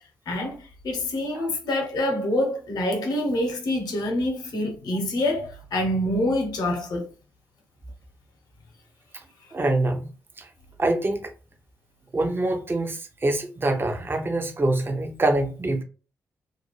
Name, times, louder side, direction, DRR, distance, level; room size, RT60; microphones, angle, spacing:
voice 1, 0.3-7.1, left 1 dB, 65° left, 0.9 m, -26 dB
voice 2, 9.5-10.1 10.4-10.5 10.8-11.3 12.1-15.8, right 2 dB, 30° right, 0.8 m, -25 dB
2.5 x 2.2 x 3.0 m
hypercardioid pair, 40°, 7 cm